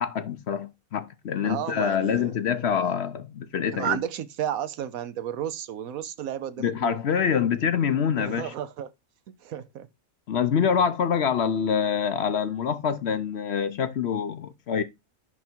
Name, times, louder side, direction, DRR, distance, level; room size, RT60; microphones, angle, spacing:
voice 1, 0.0-4.0 6.6-8.5 10.3-14.8, left 7 dB, 55° left, 0.9 m, -25 dB
voice 2, 1.4-2.3 2.8-2.9 3.7-7.0 8.2-8.9 9.4-9.9, right 10 dB, 80° right, 1.2 m, -32 dB
10.5 x 3.5 x 4.4 m
omnidirectional pair, 1.5 m